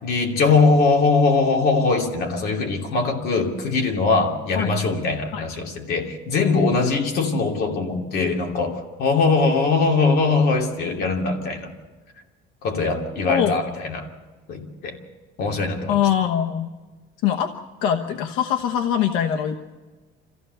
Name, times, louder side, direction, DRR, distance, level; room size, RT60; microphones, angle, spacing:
voice 1, 0.0-11.7 12.6-14.1 14.5-15.0 15.4-16.0, left 4 dB, 50° left, 2 dB, 2.9 m, -21 dB
voice 2, 13.3-13.6 15.9-16.7 17.2-17.5 17.8-19.6, left 9 dB, 80° left, 6 dB, 1.1 m, -22 dB
26.5 x 15.5 x 6.8 m, 1.3 s
cardioid pair, 165°, 21 cm